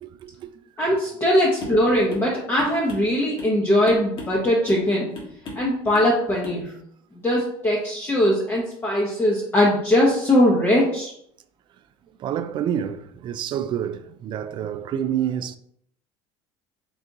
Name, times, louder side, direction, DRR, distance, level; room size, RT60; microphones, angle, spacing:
voice 1, 0.0-0.5 12.2-15.6, right 9 dB, 40° right, 0.3 m, -28 dB
voice 2, 0.8-5.1 5.5-6.8 7.1-11.1, left 1 dB, 20° left, 0.9 m, -20 dB
sound 1, 1.6-1.8 2.1-2.3 2.6-3.6 3.9-4.4 4.7-4.9 5.1-5.7 5.9-6.1 6.4-6.6, left 2 dB, 50° left, 1.5 m, -37 dB
3.9 x 2.7 x 3.5 m
supercardioid pair, 105°, 12 cm